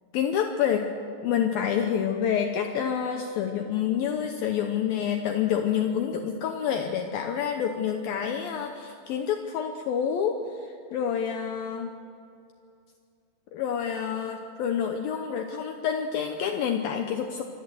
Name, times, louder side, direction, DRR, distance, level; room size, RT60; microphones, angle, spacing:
voice 1, 0.1-0.9 1.2-11.9 13.5-17.4, left 8 dB, 75° left, 4 dB, 2.4 m, -28 dB
25.5 x 13.5 x 7.9 m, 2.5 s
omnidirectional pair, 4.8 m